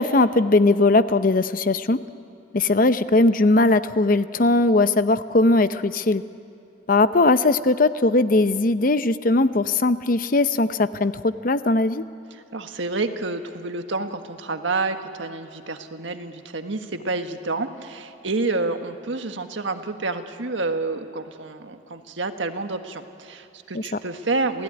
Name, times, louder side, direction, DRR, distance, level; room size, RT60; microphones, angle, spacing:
voice 1, 0.0-2.0 2.5-6.2 6.9-12.0 23.7-23.8, left 2 dB, 45° left, 12 dB, 0.7 m, -19 dB
voice 2, 12.3-24.6, right 3 dB, 80° right, 6 dB, 1.6 m, -29 dB
28.5 x 17.5 x 9.8 m, 2.6 s
head